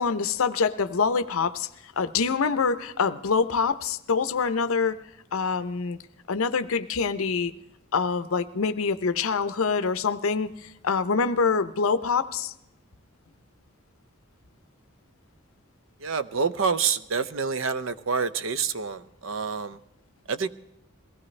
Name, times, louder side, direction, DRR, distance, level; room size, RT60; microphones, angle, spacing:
voice 1, 0.0-5.0 5.3-6.0 6.3-7.5 7.9-12.5, left 5 dB, 80° left, 11 dB, 0.6 m, -25 dB
voice 2, 16.0-19.8 20.3-20.5, right 5 dB, 70° right, 14 dB, 0.6 m, -27 dB
22.0 x 16.5 x 3.2 m, 0.87 s
head